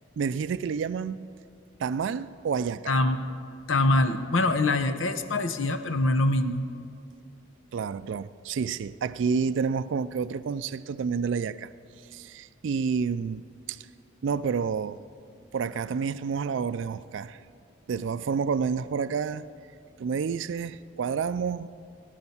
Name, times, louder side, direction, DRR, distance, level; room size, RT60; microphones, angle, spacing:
voice 1, 0.2-1.3 1.8-3.0 7.7-11.7 12.1-13.9 14.2-15.0 15.5-17.4 17.9-19.5 20.0-21.7, right 6 dB, 65° right, 0.3 m, -29 dB
voice 2, 2.9-3.2 3.7-6.7, left 2 dB, 70° left, 0.8 m, -24 dB
19.0 x 10.5 x 5.6 m
head